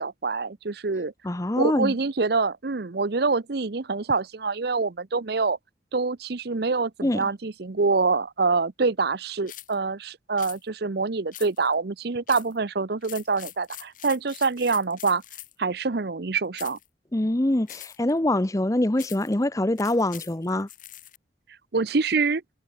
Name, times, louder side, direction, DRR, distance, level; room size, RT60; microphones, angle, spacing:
voice 1, 0.0-1.1 1.6-5.6 5.9-15.2 15.6-16.8 21.7-22.4, right 4 dB, 55° right, 0.7 m, -25 dB
voice 2, 1.2-1.9 7.0-7.3 17.1-20.7, left 1 dB, 15° left, 0.7 m, -24 dB
sound 1, 9.5-9.8 10.4-10.6 11.3-11.7 12.3-12.6 13.0-15.6 16.5-16.9 17.7-18.1 19.0-19.3 19.8-21.2, left 13 dB, 45° left, 3.0 m, -43 dB
head